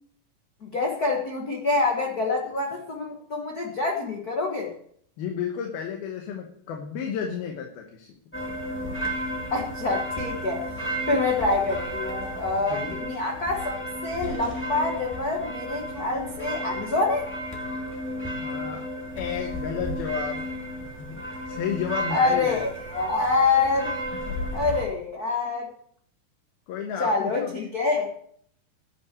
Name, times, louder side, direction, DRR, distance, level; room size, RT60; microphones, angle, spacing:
voice 1, 0.6-4.7 9.5-17.3 22.1-23.9 24.5-25.7 27.0-28.1, left 3 dB, 70° left, 0 dB, 0.8 m, -26 dB
voice 2, 5.2-8.2 12.7-12.9 18.4-18.9 19.1-20.4 21.0-22.7 24.3-24.7 26.7-27.7, left 7 dB, 90° left, 2 dB, 3.1 m, -32 dB
sound 1, 8.3-24.8, equal, 5° left, 1.2 m, -33 dB
12.0 x 5.9 x 8.3 m, 0.64 s
omnidirectional pair, 4.2 m